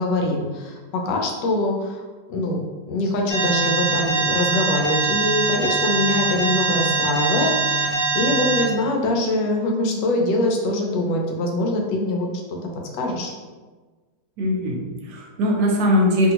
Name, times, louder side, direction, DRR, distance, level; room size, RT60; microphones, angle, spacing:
voice 1, 0.0-2.6 2.9-12.3 13.0-13.3, left 2 dB, 85° left, 1 dB, 1.2 m, -23 dB
Alarm, 3.3-8.6, right 4 dB, 30° left, 1.0 m, -22 dB
voice 2, 14.4-16.3, left 1 dB, 75° right, 0 dB, 1.1 m, -20 dB
2.9 x 2.7 x 2.8 m, 1.3 s
omnidirectional pair, 1.9 m